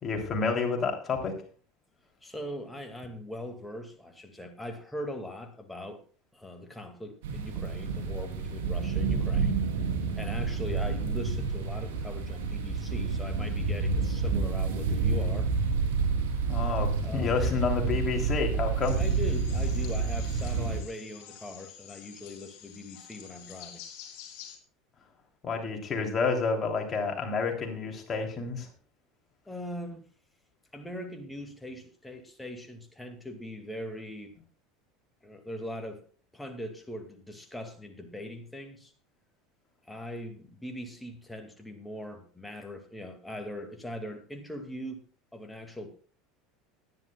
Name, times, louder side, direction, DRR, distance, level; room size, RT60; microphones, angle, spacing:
voice 1, 0.0-1.3 16.5-19.0 25.4-28.7, left 4 dB, 30° left, 2 dB, 3.2 m, -29 dB
voice 2, 2.2-6.0 6.3-9.6 10.2-15.5 17.0-17.4 19.0-23.8 29.5-30.0 30.7-34.3 35.2-36.0 36.3-38.9 39.9-45.0 45.3-45.9, left 1 dB, 5° left, 5 dB, 2.2 m, -40 dB
sound 1, 7.2-20.8, right 4 dB, 65° right, 3.1 m, -29 dB
sound 2, 18.8-24.6, left 10 dB, 50° left, 3.4 m, -48 dB
19.5 x 10.5 x 2.4 m, 0.41 s
figure-of-eight pair, 75°, 0 cm